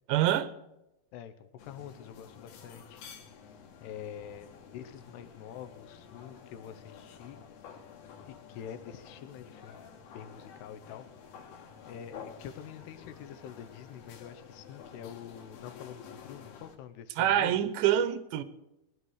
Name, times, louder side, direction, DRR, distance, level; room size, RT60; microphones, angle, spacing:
voice 1, 0.1-0.5 17.2-18.4, right 11 dB, 85° right, 14 dB, 3.2 m, -26 dB
voice 2, 1.1-3.6 3.8-7.4 8.3-9.9 10.1-11.1 11.9-17.6, left 9 dB, 75° left, 11 dB, 2.8 m, -46 dB
sound 1, 1.6-16.8, left 7 dB, 60° left, 3.4 m, -50 dB
19.5 x 11.0 x 6.5 m, 0.89 s
omnidirectional pair, 5.1 m